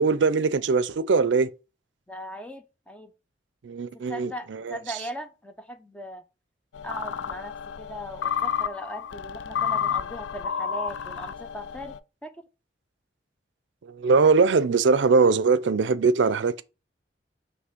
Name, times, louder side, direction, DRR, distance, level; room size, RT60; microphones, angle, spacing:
voice 1, 0.0-1.5 3.6-4.8 13.8-16.6, right 4 dB, 85° right, 0.4 m, -21 dB
voice 2, 2.1-3.1 4.1-6.2 6.8-11.9 12.2-12.3, equal, 5° left, 0.6 m, -39 dB
sound 1, 6.7-12.0, left 8 dB, 90° left, 0.4 m, -31 dB
6.0 x 3.2 x 5.7 m
head